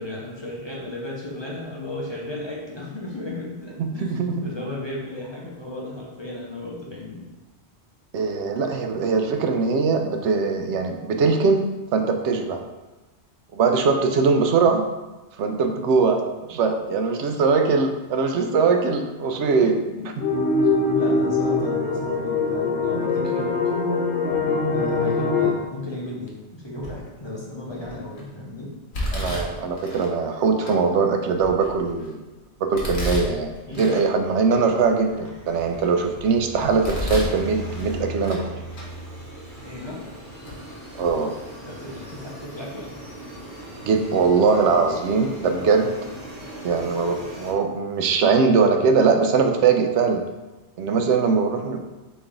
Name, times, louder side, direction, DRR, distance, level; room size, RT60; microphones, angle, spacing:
voice 1, 0.0-7.3 20.0-20.1 20.6-23.5 24.7-28.7 33.7-34.0 39.6-40.0 41.7-43.0, left 1 dB, 30° left, -4 dB, 0.6 m, -35 dB
voice 2, 3.8-4.5 8.1-12.6 13.5-14.9 15.4-16.2 16.5-19.8 29.1-32.2 32.6-38.6 41.0-41.3 43.8-45.9 46.6-50.2 50.8-51.8, right 4 dB, 85° right, 5 dB, 0.9 m, -21 dB
sound 1, 20.2-25.5, left 3 dB, 70° left, 1.1 m, -22 dB
Domestic sounds home sounds, 26.8-27.2 27.8-28.2 28.9-30.1 30.7-30.8 31.3-32.1 32.8-34.1 34.5-34.6 35.2-36.1 36.6-37.4 37.7-38.5 38.7-38.9 39.7-39.8 40.5-40.6 40.9-41.1, left 1 dB, 50° left, 1.2 m, -31 dB
sound 2, 33.5-47.5, right 1 dB, 50° right, 0.9 m, -39 dB
4.1 x 3.3 x 3.7 m, 1.1 s
omnidirectional pair, 1.1 m